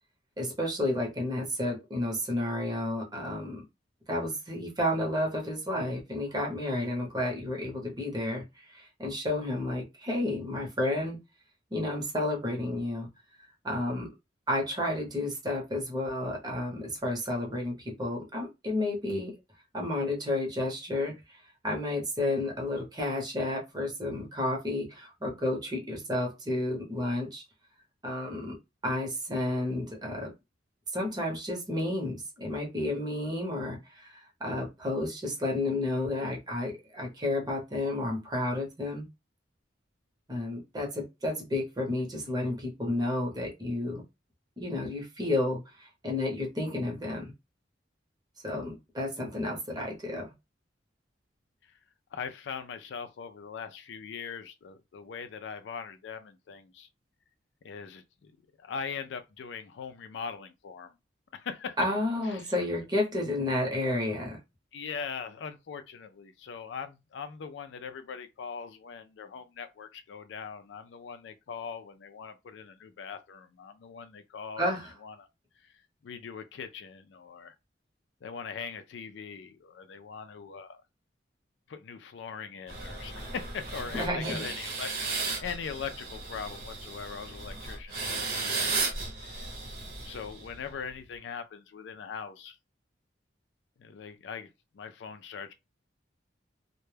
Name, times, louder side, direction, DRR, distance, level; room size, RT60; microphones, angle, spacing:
voice 1, 0.4-3.6 4.1-11.2 11.7-13.1 13.6-14.1 14.5-19.3 19.7-21.1 21.6-27.4 28.0-28.6 28.8-30.3 30.9-34.1 34.4-39.1 40.3-44.0 44.6-47.3 48.4-50.3 61.8-64.4 74.6-74.9 83.9-84.4, left 1 dB, 25° right, 0.8 m, -31 dB
voice 2, 52.1-56.9 57.6-58.3 58.6-61.0 61.3-61.8 62.2-62.5 64.7-75.3 75.6-75.7 76.0-77.5 78.2-80.8 81.7-84.9 85.2-88.9 89.2-89.5 90.0-92.6 93.8-95.5, left 6 dB, 75° left, 0.4 m, -41 dB
sound 1, 82.7-90.7, right 3 dB, 55° right, 1.0 m, -35 dB
2.1 x 2.1 x 3.2 m
head